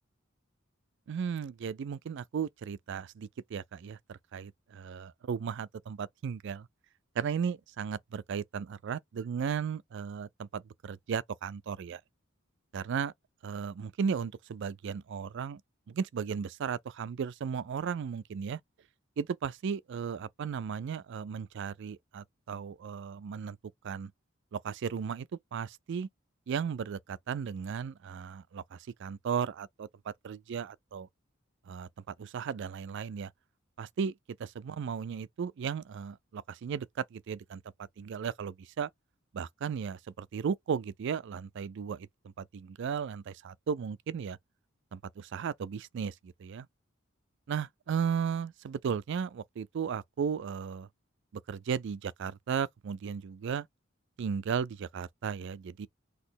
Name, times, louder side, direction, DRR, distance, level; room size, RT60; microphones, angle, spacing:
voice 1, 1.1-6.7 7.2-12.0 12.7-13.1 13.4-15.6 15.9-18.6 19.2-23.6 23.8-24.1 24.5-25.3 25.5-26.1 26.5-31.1 31.7-33.3 33.8-34.1 34.4-37.6 38.0-38.9 39.3-42.1 42.4-44.4 44.9-46.7 47.5-50.9 51.5-53.7 54.2-55.9, right 6 dB, 60° right, 0.4 m, -35 dB
4.1 x 2.9 x 3.8 m
head